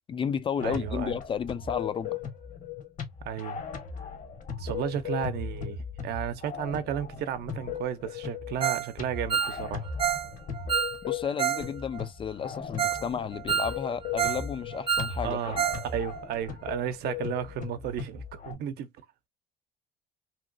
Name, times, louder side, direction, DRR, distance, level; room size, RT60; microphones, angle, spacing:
voice 1, 0.1-2.2 11.1-15.6, left 7 dB, 30° left, 0.3 m, -32 dB
sound 1, 0.6-18.5, left 7 dB, 50° left, 1.0 m, -38 dB
voice 2, 0.6-1.2 3.2-3.6 4.6-9.9 15.2-15.6 15.8-18.9, right 9 dB, 70° right, 0.6 m, -33 dB
Ringtone, 8.6-8.9 9.1-11.7 11.9-12.0 12.5-12.6 12.8-13.1 13.3-14.5 14.7-15.9 16.1-16.2 16.6-16.7, right 8 dB, 30° right, 0.6 m, -28 dB
2.9 x 2.9 x 2.6 m
cardioid pair, 110°, 17 cm